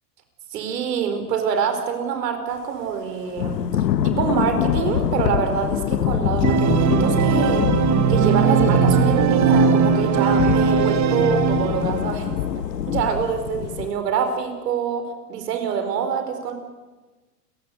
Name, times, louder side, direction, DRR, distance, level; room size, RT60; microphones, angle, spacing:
voice 1, 0.5-3.8 4.0-7.7 8.1-12.4 12.9-15.0 15.3-16.5, right 6 dB, 75° right, 7 dB, 5.0 m, -25 dB
Thunder / Rain, 3.4-13.9, left 10 dB, 80° left, 1.5 m, -25 dB
Organ, 6.4-12.2, right 6 dB, 35° right, 2.0 m, -19 dB
29.5 x 15.5 x 8.1 m, 1.2 s
hypercardioid pair, 100°, 48 cm